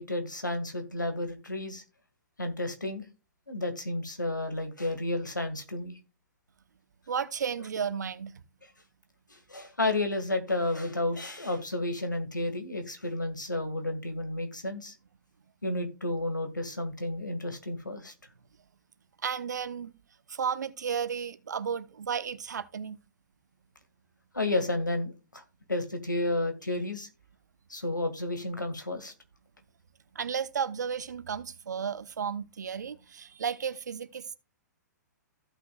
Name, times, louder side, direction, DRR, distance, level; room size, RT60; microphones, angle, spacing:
voice 1, 0.0-1.8 2.4-3.1 3.5-6.0 9.3-14.9 15.6-18.1 24.3-25.4 25.7-27.1 27.7-29.1, left 2 dB, 90° left, 1.9 m, -31 dB
voice 2, 7.1-8.4 19.2-19.9 20.3-23.0 30.1-34.3, right 7 dB, 70° right, 0.9 m, -33 dB
15.5 x 6.0 x 2.4 m
figure-of-eight pair, 115°, 10 cm